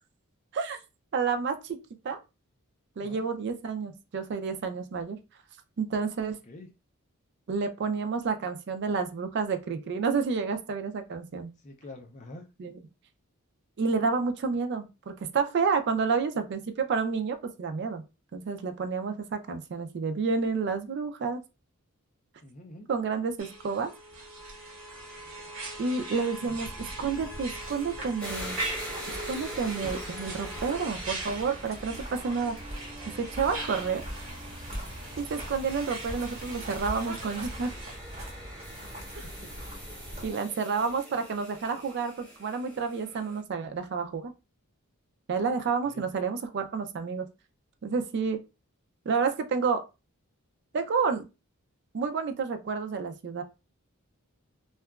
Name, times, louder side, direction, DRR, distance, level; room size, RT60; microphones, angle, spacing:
voice 1, 1.1-1.8 2.0-2.2 3.0-5.2 5.8-6.4 7.5-11.5 12.6-12.8 13.8-18.0 18.3-21.4 22.9-23.9 25.8-26.7 27.0-28.6 29.3-32.6 33.1-34.0 35.2-37.7 39.1-39.2 40.2-44.3 45.3-47.3 47.8-48.4 49.1-49.8 50.7-51.2 51.9-53.4, right 5 dB, 50° right, 7 dB, 0.3 m, -30 dB
voice 2, 11.6-12.4 22.4-22.9 26.4-26.6 39.2-39.3 45.9-46.1, left 2 dB, 35° left, 4 dB, 0.4 m, -46 dB
sound 1, 23.4-38.0, right 2 dB, 65° right, 1.0 m, -41 dB
sound 2, 26.5-40.3, equal, 30° right, 1.0 m, -42 dB
sound 3, 28.2-43.4, right 1 dB, 5° left, 0.9 m, -45 dB
2.8 x 2.2 x 2.3 m, 0.27 s
head